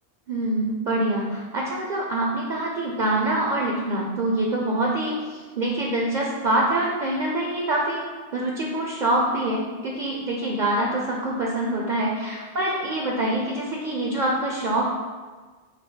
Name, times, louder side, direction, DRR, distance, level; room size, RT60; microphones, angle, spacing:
voice 1, 0.3-8.1 8.3-14.8, right 1 dB, 55° right, -2 dB, 0.6 m, -25 dB
5.9 x 2.0 x 4.4 m, 1.4 s
omnidirectional pair, 1.1 m